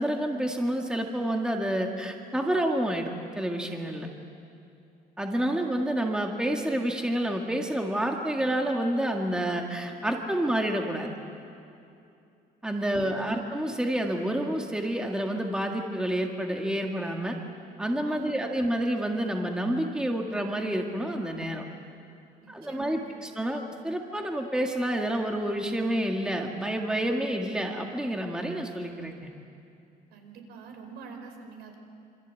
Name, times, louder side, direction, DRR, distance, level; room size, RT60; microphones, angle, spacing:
voice 1, 0.0-4.1 5.2-11.1 12.6-17.4 17.8-21.6 22.5-29.3, right 1 dB, 5° right, 2 dB, 1.8 m, -29 dB
voice 2, 12.8-13.4 18.1-18.6 22.4-23.2 30.1-31.8, right 4 dB, 80° right, 4 dB, 5.2 m, -45 dB
26.5 x 26.0 x 8.3 m, 2.6 s
cardioid pair, 155°, 17 cm